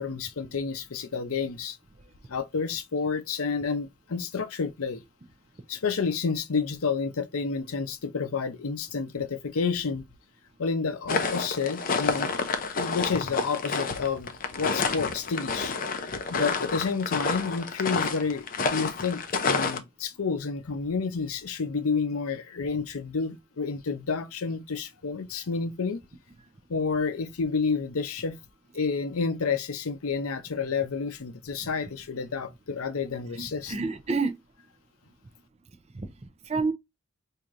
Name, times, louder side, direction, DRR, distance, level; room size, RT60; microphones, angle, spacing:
voice 1, 0.0-1.8 2.3-5.0 5.7-10.0 10.6-12.3 12.7-15.7 16.0-26.0 26.7-28.4 28.7-33.7, left 5 dB, 80° left, 0.6 m, -30 dB
sound 1, 11.1-19.8, left 4 dB, 40° left, 0.5 m, -29 dB
voice 2, 33.3-34.4 35.9-36.7, right 4 dB, 30° right, 0.5 m, -30 dB
4.6 x 2.8 x 2.5 m
head